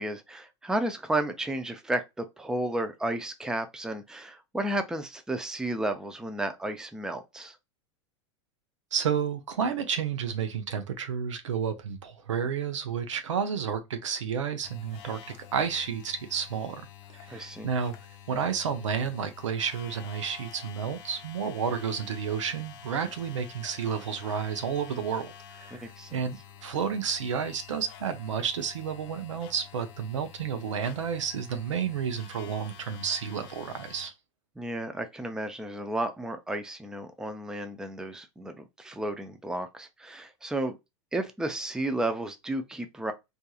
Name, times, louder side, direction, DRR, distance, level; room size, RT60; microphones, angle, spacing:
voice 1, 0.0-7.6 17.3-17.7 25.7-26.2 34.6-40.8 41.1-43.1, right 1 dB, 5° right, 0.4 m, -33 dB
voice 2, 8.9-15.2 15.5-16.8 17.1-17.9 18.3-25.3 25.6-34.1, right 7 dB, 90° right, 0.6 m, -31 dB
sound 1, 14.6-34.1, left 9 dB, 55° left, 0.6 m, -49 dB
2.7 x 2.5 x 2.3 m
hypercardioid pair, 105°, 15 cm